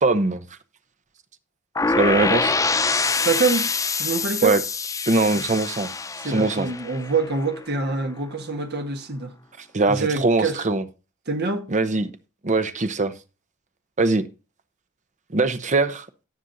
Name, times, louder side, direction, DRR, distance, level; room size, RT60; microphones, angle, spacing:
voice 1, 0.0-0.4 2.0-2.5 4.4-4.6 5.1-5.9 6.2-6.7 9.7-10.8 11.7-12.1 12.4-13.1 14.0-14.2 15.3-16.1, right 3 dB, 35° right, 0.8 m, -21 dB
sound 1, 1.8-7.6, left 4 dB, 15° left, 0.4 m, -25 dB
voice 2, 3.2-3.7 3.9-4.5 5.3-5.4 6.2-9.3 9.9-10.6 11.3-11.7, right 4 dB, 50° right, 1.4 m, -25 dB
18.0 x 6.2 x 2.7 m
head